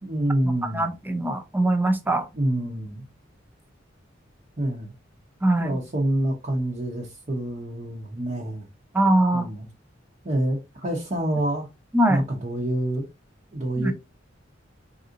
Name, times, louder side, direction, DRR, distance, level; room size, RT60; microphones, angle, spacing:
voice 1, 0.0-0.9 2.3-3.0 4.6-4.9 5.6-8.7 9.3-9.7 10.2-11.7 12.1-13.0 13.5-13.9, right 1 dB, 40° right, 0.9 m, -27 dB
voice 2, 0.6-2.3 5.4-5.8 8.9-9.5 11.9-12.2 13.8-13.9, right 1 dB, 10° right, 0.4 m, -22 dB
4.0 x 2.5 x 2.7 m
head